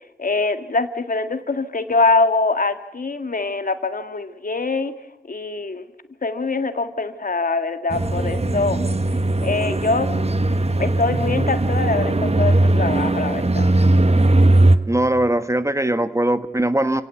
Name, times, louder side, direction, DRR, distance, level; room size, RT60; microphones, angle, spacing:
voice 1, 0.2-4.9 5.2-5.9 6.2-8.9 9.4-10.1 10.8-13.7, left 3 dB, 60° left, 9 dB, 1.8 m, -23 dB
sound 1, 7.9-14.8, right 2 dB, 40° right, 1.3 m, -18 dB
voice 2, 14.9-17.0, right 1 dB, 20° right, 11 dB, 1.3 m, -20 dB
28.5 x 17.5 x 8.3 m, 0.90 s
cardioid pair, 50°, 16 cm